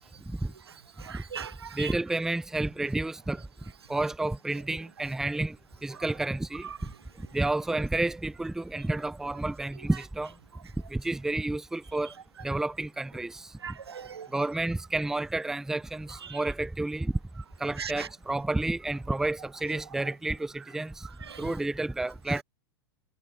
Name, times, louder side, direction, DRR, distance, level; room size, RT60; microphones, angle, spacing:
voice 1, 1.0-1.9 6.6-6.8 13.6-14.3 16.2-16.4 17.8-18.1 21.2-21.5, right 7 dB, 75° right, 0.9 m, -39 dB
voice 2, 1.7-3.4 3.9-5.6 5.8-6.7 7.2-10.3 10.9-12.1 12.4-13.5 14.3-17.1 17.6-21.1 21.4-22.4, right 2 dB, 5° right, 0.6 m, -30 dB
figure-of-eight pair, 100°, 13 cm